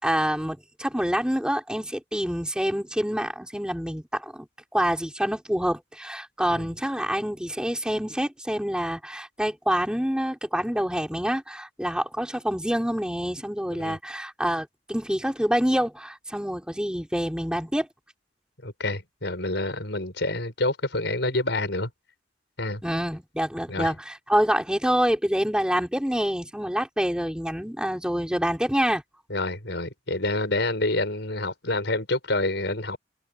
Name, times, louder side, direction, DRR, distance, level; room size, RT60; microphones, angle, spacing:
voice 1, 0.0-4.5 4.7-17.9 22.8-29.0, equal, 5° right, 5.1 m, -26 dB
voice 2, 18.6-21.9 22.6-22.8 23.7-23.9 29.3-33.0, left 2 dB, 65° left, 7.0 m, -27 dB
head